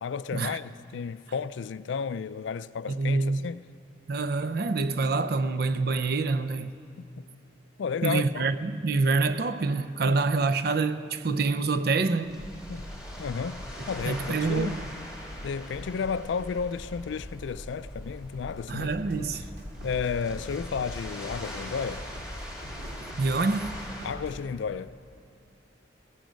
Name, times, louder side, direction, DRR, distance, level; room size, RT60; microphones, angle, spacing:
voice 1, 0.0-3.6 7.0-7.2 7.8-8.5 10.0-10.2 12.7-12.9 13.2-14.8 15.4-18.9 19.8-22.1 24.0-25.0, left 6 dB, 75° left, 0.3 m, -32 dB
voice 2, 2.9-3.5 4.1-6.8 8.0-12.4 14.0-14.8 18.7-19.4 22.8-23.7, right 3 dB, 55° right, 0.5 m, -26 dB
sound 1, 11.5-24.1, equal, 5° right, 2.2 m, -44 dB
sound 2, 12.2-22.9, equal, 90° right, 4.9 m, -44 dB
sound 3, 18.9-24.5, equal, 70° right, 2.0 m, -43 dB
17.0 x 15.5 x 5.2 m
head